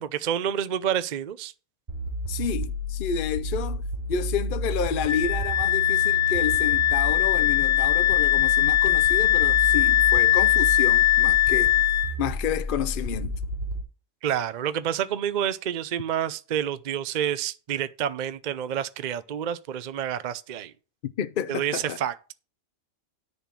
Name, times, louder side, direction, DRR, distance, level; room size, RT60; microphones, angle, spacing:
voice 1, 0.0-1.5 14.2-20.7 21.5-22.1, right 9 dB, 65° right, 0.4 m, -28 dB
sound 1, 1.9-13.8, left 1 dB, 30° right, 3.4 m, -31 dB
voice 2, 2.3-3.8 4.1-11.8 12.2-13.3 21.0-22.0, left 8 dB, 60° left, 0.5 m, -30 dB
Wind instrument woodwind instrument, 5.1-12.1, left 13 dB, 75° left, 1.4 m, -21 dB
10.0 x 4.3 x 7.5 m
omnidirectional pair, 1.5 m